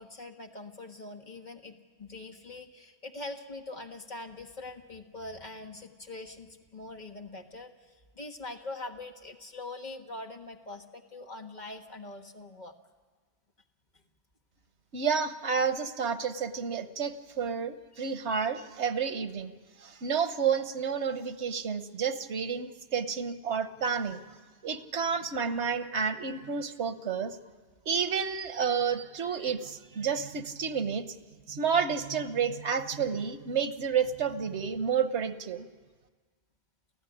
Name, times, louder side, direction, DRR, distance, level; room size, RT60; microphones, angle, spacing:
voice 1, 0.0-12.7 13.9-14.0 17.9-18.1, left 2 dB, 45° left, 3 dB, 1.6 m, -43 dB
voice 2, 14.9-19.5 19.8-24.2 24.6-27.4 27.9-31.1 31.5-35.7, right 6 dB, 90° right, 11 dB, 1.3 m, -30 dB
29.0 x 14.5 x 10.0 m, 1.5 s
omnidirectional pair, 1.1 m